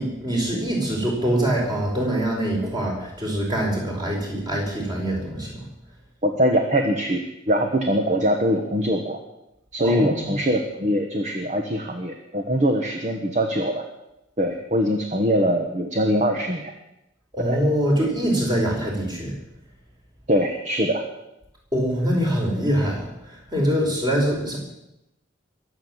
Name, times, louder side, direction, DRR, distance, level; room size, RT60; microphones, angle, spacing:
voice 1, 0.0-5.6 9.8-10.3 17.3-19.3 21.7-24.6, equal, 20° right, -1 dB, 4.7 m, -24 dB
voice 2, 6.2-9.2 9.7-13.8 14.4-16.7 17.4-17.6 20.3-21.0, equal, 35° right, 4 dB, 1.3 m, -22 dB
22.0 x 8.2 x 7.4 m, 0.89 s
head